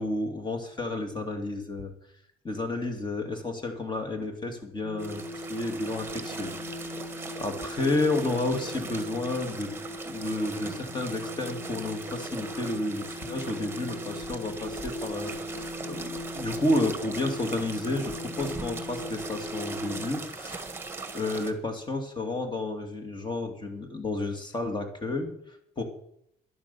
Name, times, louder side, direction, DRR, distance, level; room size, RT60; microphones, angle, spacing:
voice 1, 0.0-1.9 2.4-7.0 7.4-9.7 10.0-20.7 21.1-25.8, left 2 dB, 25° left, 6 dB, 2.4 m, -31 dB
sound 1, 4.8-20.0, left 1 dB, 60° left, 3.5 m, -39 dB
sound 2, 5.0-21.5, right 3 dB, 15° right, 1.6 m, -40 dB
11.5 x 10.5 x 7.0 m, 0.74 s
cardioid pair, 110°, 17 cm